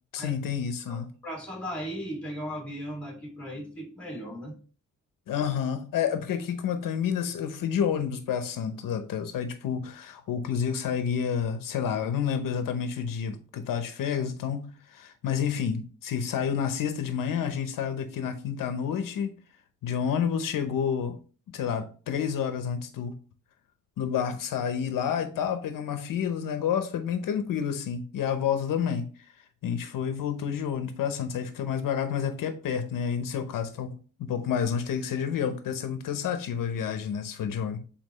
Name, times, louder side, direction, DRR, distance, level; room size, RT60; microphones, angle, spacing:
voice 1, 0.1-1.1 5.3-19.3 19.8-21.2 21.5-23.2 24.0-29.3 29.6-33.9 34.2-37.8, left 7 dB, 75° left, 0.9 m, -29 dB
voice 2, 1.2-4.6, equal, 5° left, 2.3 m, -37 dB
7.7 x 4.2 x 3.1 m
wide cardioid pair, 180°, 33 cm